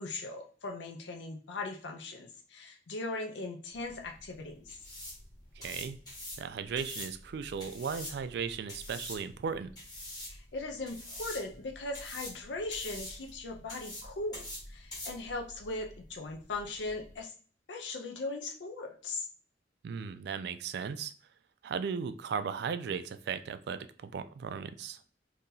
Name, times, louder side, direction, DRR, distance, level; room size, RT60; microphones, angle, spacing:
voice 1, 0.0-4.6 10.3-14.4 14.7-17.3 17.7-19.3, left 2 dB, 70° left, 2 dB, 0.5 m, -39 dB
sound 1, 3.7-17.2, left 1 dB, 20° left, 1.5 m, -46 dB
voice 2, 5.6-6.0 6.4-9.7 19.8-21.1 21.6-25.0, right 6 dB, 60° right, 12 dB, 0.3 m, -36 dB
2.8 x 2.7 x 3.7 m, 0.42 s
head